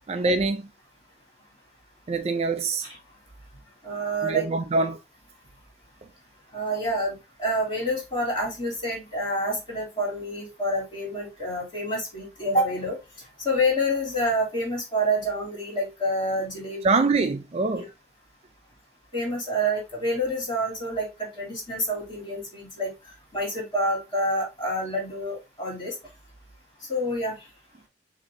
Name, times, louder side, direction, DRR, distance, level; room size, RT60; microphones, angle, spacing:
voice 1, 0.1-0.7 2.1-2.9 4.2-5.0 16.8-17.8, right 3 dB, 35° right, 0.4 m, -24 dB
voice 2, 3.8-4.4 4.8-4.9 6.5-13.0 13.4-17.0 19.1-22.9 23.3-26.0 26.9-27.5, equal, 30° left, 2.8 m, -28 dB
6.4 x 2.9 x 2.6 m
head